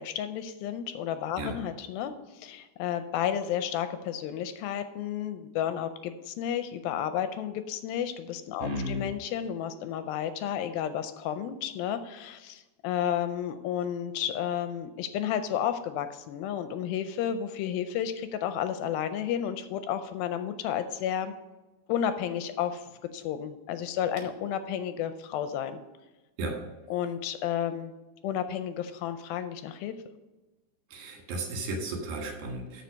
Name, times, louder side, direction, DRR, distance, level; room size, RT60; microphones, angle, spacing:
voice 1, 0.0-21.3 21.9-22.8 23.1-25.8 26.9-27.9 28.2-29.9, left 9 dB, 80° left, 10 dB, 2.3 m, -32 dB
voice 2, 8.6-9.1 26.4-26.6 30.9-32.8, right 1 dB, 70° right, 1 dB, 3.6 m, -34 dB
13.0 x 4.8 x 5.2 m, 1.1 s
omnidirectional pair, 4.4 m